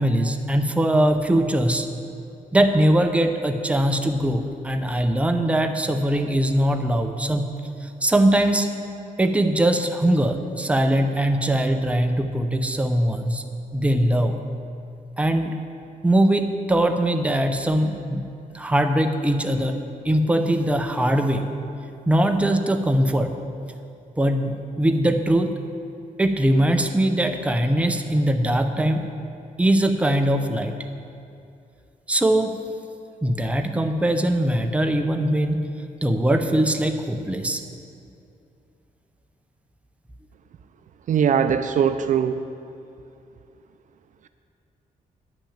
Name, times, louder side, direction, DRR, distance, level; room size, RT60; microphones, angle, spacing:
voice 1, 0.0-1.9 2.5-7.5 7.8-8.7 9.2-13.4 13.7-14.4 15.2-15.6 16.0-18.2 18.5-19.8 20.0-21.5 22.1-23.4 24.2-25.5 26.2-29.0 29.6-30.8 32.1-32.6 33.2-35.6 36.0-37.6, right 1 dB, 10° right, 5 dB, 0.6 m, -21 dB
voice 2, 41.1-42.4, right 7 dB, 60° right, 9 dB, 0.4 m, -20 dB
10.0 x 6.1 x 7.2 m, 2.5 s
cardioid pair, 115°, 15 cm